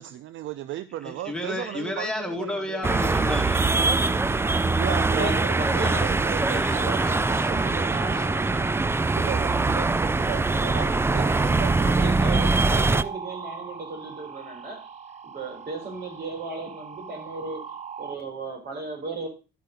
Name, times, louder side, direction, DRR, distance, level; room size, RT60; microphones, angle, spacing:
voice 1, 0.0-2.9 4.7-8.2 9.1-12.3, right 12 dB, 75° right, 0.5 m, -36 dB
voice 2, 1.0-3.7 5.2-5.4 6.4-10.4, left 1 dB, 5° left, 2.1 m, -34 dB
sound 1, 2.8-13.0, right 3 dB, 10° right, 0.4 m, -23 dB
sound 2, 3.6-18.1, right 6 dB, 35° right, 0.8 m, -41 dB
voice 3, 4.8-6.4 12.0-14.9 15.2-17.6 18.0-19.3, right 2 dB, 55° right, 4.2 m, -35 dB
12.0 x 5.5 x 5.1 m
cardioid pair, 90°, 20 cm